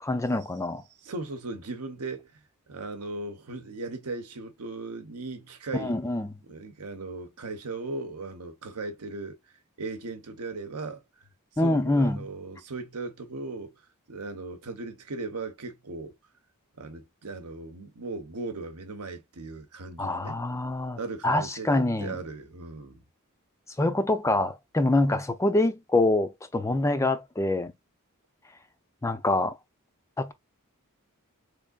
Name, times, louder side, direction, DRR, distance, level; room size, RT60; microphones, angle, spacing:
voice 1, 0.0-0.8 5.8-6.3 11.6-12.3 20.0-21.0 21.2-22.2 23.8-27.7 29.0-29.5 30.2-30.3, left 2 dB, 15° left, 0.4 m, -25 dB
voice 2, 1.0-6.0 6.5-9.4 9.8-11.0 11.5-13.8 14.1-16.2 16.8-20.4 21.0-23.0, right 3 dB, 85° right, 0.9 m, -37 dB
3.5 x 3.3 x 2.3 m
head